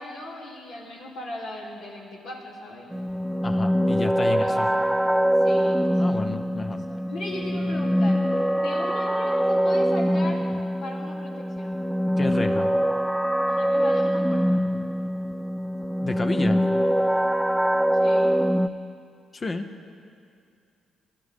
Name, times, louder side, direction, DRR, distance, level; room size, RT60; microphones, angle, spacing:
voice 1, 0.0-2.9 4.3-4.8 5.4-6.2 6.6-10.4 10.8-11.8 13.5-14.6 17.9-18.3, left 1 dB, 75° left, -4 dB, 2.8 m, -38 dB
sound 1, 2.9-18.7, equal, 5° right, 0.5 m, -23 dB
voice 2, 3.4-4.7 6.0-6.8 12.2-12.7 16.0-16.6 19.3-19.7, left 3 dB, 35° left, 6 dB, 0.8 m, -30 dB
20.5 x 11.5 x 3.5 m, 2.4 s
hypercardioid pair, 50°, 0 cm